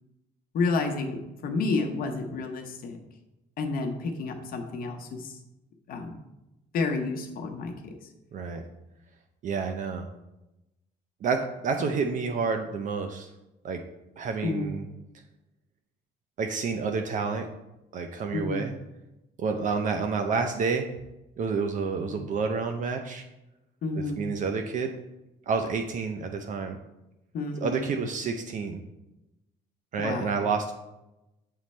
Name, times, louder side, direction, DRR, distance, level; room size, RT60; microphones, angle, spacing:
voice 1, 0.5-3.0 3.6-5.4 5.9-6.2 6.7-8.0 11.8-11.9 14.4-14.7 18.3-18.6 22.0-22.2 23.8-24.2 27.3-27.8 30.0-30.5, left 3 dB, 60° left, 3 dB, 0.8 m, -30 dB
voice 2, 8.3-8.6 9.4-10.1 11.2-13.3 13.6-13.8 14.2-14.9 16.4-17.5 17.9-18.7 19.4-20.9 21.4-23.2 24.0-24.9 25.5-26.8 27.6-28.8 29.9-30.7, right 5 dB, 50° right, 5 dB, 0.5 m, -29 dB
7.4 x 3.1 x 4.2 m, 0.95 s
cardioid pair, 110°, 17 cm